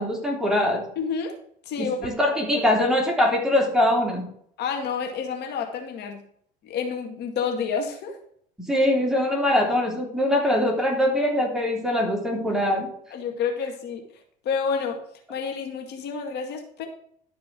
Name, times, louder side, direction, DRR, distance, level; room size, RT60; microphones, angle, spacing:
voice 1, 0.0-0.8 1.8-4.2 8.6-12.9, left 1 dB, 5° right, 0 dB, 3.3 m, -22 dB
voice 2, 1.0-1.3 1.7-2.3 2.5-2.7 4.6-6.2 6.6-8.2 13.1-14.0 14.4-15.0 15.3-16.9, left 6 dB, 55° left, 3 dB, 2.1 m, -29 dB
12.5 x 5.0 x 6.1 m, 0.65 s
supercardioid pair, 100°, 20 cm